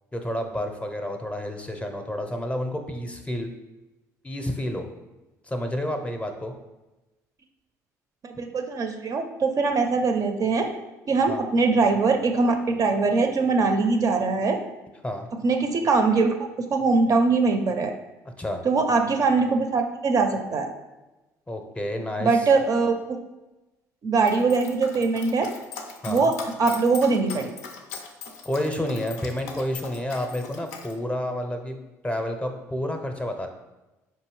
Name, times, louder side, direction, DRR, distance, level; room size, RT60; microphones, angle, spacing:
voice 1, 0.1-3.5 4.2-4.9 5.4-6.5 11.3-11.4 15.0-15.3 18.4-18.6 21.5-22.5 26.0-26.3 28.4-31.8 32.0-33.5, left 1 dB, 15° left, 5 dB, 0.6 m, -30 dB
voice 2, 8.2-10.7 11.1-14.6 15.4-17.9 18.6-20.7 22.2-23.0 24.0-25.5 26.1-27.5, right 4 dB, 45° right, 5 dB, 0.4 m, -22 dB
Dog, 24.2-30.9, left 6 dB, 85° left, 0.4 m, -40 dB
4.5 x 2.7 x 3.1 m, 1.1 s
hypercardioid pair, 60°, 8 cm